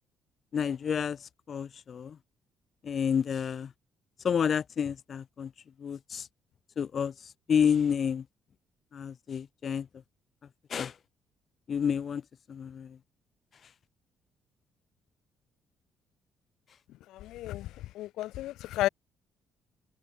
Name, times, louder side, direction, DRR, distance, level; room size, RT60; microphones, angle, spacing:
voice 1, 0.5-1.2 1.5-2.2 2.8-3.7 4.2-5.5 5.8-6.3 6.8-7.1 7.5-8.2 8.9-9.9 10.7-10.9 11.7-12.2 12.5-13.0, left 7 dB, 45° left, 0.9 m, -29 dB
voice 2, 18.0-18.9, left 15 dB, 85° left, 0.7 m, -31 dB
cardioid pair, 130°, 0 cm